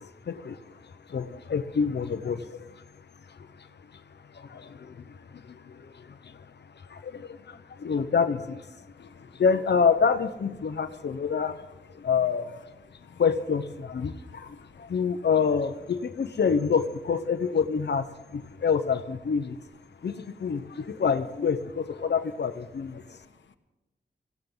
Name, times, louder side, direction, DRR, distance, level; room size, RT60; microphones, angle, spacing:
voice 1, 0.0-12.7 13.2-19.6 20.0-23.2, left 6 dB, 65° left, 8 dB, 1.0 m, -28 dB
voice 2, 9.0-9.4 12.0-12.1 12.9-13.2 14.1-14.9 18.5-18.6 19.9-20.3 23.0-23.6, left 5 dB, 85° left, 6 dB, 1.2 m, -57 dB
20.5 x 16.5 x 3.9 m, 1.1 s
wide cardioid pair, 110°, 19 cm